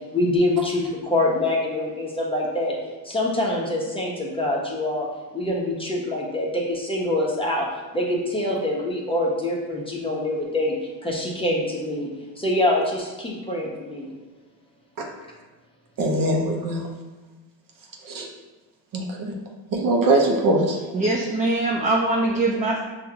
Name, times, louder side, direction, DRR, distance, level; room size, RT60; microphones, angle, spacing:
voice 1, 0.1-2.7 3.0-5.1 5.3-7.7 7.9-10.7 11.0-12.1 12.4-14.1, left 1 dB, 10° left, -3 dB, 1.0 m, -25 dB
voice 2, 16.0-16.9 18.0-18.3 18.9-19.3 19.7-20.8, right 2 dB, 45° right, 1 dB, 0.9 m, -22 dB
voice 3, 20.9-22.8, right 2 dB, 15° right, -2 dB, 0.5 m, -22 dB
5.5 x 2.5 x 2.9 m, 1.2 s
supercardioid pair, 75°, 46 cm